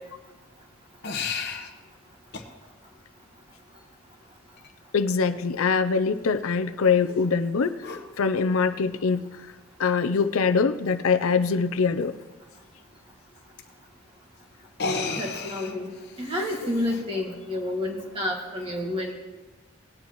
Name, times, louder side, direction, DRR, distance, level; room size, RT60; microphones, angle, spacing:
sound 1, 1.0-1.7 2.3-2.5 4.6-4.7 7.8-8.0 9.5-9.6 10.0-10.1 10.4-10.5 13.6-13.7 14.7-17.0, left 4 dB, 50° left, 1.0 m, -33 dB
voice 1, 4.9-7.8 8.2-9.2 9.8-12.1, left 5 dB, 80° left, 11 dB, 0.5 m, -23 dB
voice 2, 15.2-15.9 16.2-19.1, left 1 dB, 25° right, 0 dB, 1.9 m, -29 dB
18.5 x 9.6 x 3.0 m, 1.3 s
head